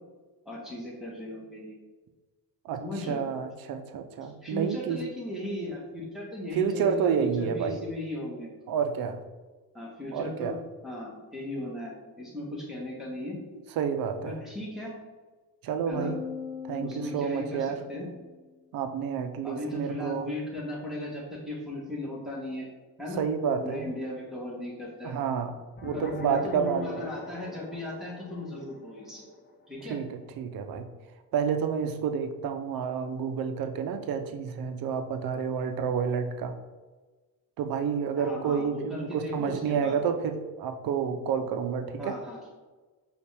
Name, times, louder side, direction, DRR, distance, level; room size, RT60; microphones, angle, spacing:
voice 1, 0.4-1.7 2.8-3.2 4.2-8.5 9.7-10.5 10.8-13.4 14.2-14.9 15.9-16.1 16.8-18.1 19.4-22.7 23.0-23.2 23.6-25.2 25.9-29.2 29.7-30.0 38.1-40.0 42.0-42.4, left 1 dB, ahead, -5 dB, 1.3 m, -37 dB
voice 2, 2.6-5.0 6.5-7.8 8.7-9.2 10.1-10.6 13.8-14.4 15.6-16.2 16.6-17.8 18.7-20.3 23.2-23.9 25.0-25.5 25.8-27.0 29.9-30.9 31.3-36.5 37.6-42.2, right 7 dB, 55° right, 8 dB, 0.5 m, -29 dB
sound 1, 15.9-18.4, left 7 dB, 90° left, 0.8 m, -40 dB
sound 2, 25.8-30.6, left 3 dB, 25° left, 0.5 m, -43 dB
5.1 x 2.4 x 3.3 m, 1.3 s
cardioid pair, 90°, 42 cm